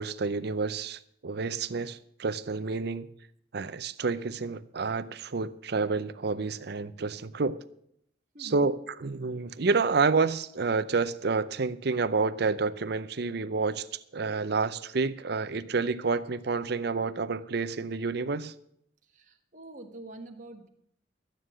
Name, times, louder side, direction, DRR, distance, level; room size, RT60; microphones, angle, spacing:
voice 1, 0.0-3.1 3.5-7.6 8.4-13.9 14.1-18.5, right 4 dB, 65° right, 0.6 m, -29 dB
voice 2, 8.3-8.7 19.1-20.7, right 2 dB, 45° right, 1.5 m, -45 dB
13.0 x 9.5 x 6.3 m
head